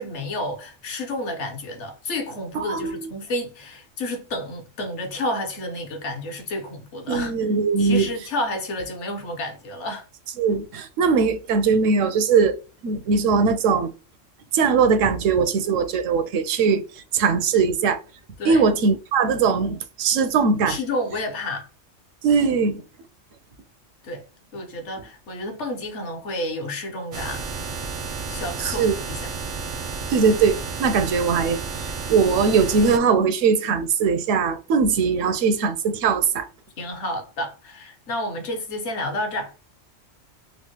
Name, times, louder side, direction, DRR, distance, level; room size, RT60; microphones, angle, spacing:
voice 1, 0.0-7.3 7.8-10.0 18.4-18.6 20.6-21.7 24.0-24.2 24.5-27.5 28.3-29.2 36.8-39.5, left 1 dB, 65° left, 1.2 m, -30 dB
voice 2, 2.5-2.9 7.1-8.1 10.4-12.6 12.8-13.9 14.5-18.0 18.4-20.8 22.2-22.8 28.6-28.9 30.1-36.5, right 5 dB, 85° right, 1.0 m, -20 dB
sound 1, 27.1-33.0, right 4 dB, 55° right, 0.5 m, -31 dB
3.6 x 2.1 x 2.9 m
omnidirectional pair, 1.3 m